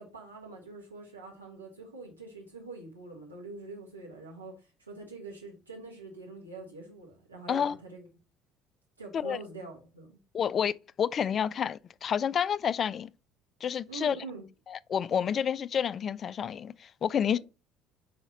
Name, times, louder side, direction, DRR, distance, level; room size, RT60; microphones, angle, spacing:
voice 1, 0.0-8.1 9.0-10.1 13.9-14.4, right 3 dB, 90° right, 1.5 m, -44 dB
voice 2, 10.3-13.1 13.6-14.2 14.7-17.4, left 8 dB, 40° left, 0.3 m, -29 dB
5.0 x 4.0 x 5.8 m
figure-of-eight pair, 55°, 0 cm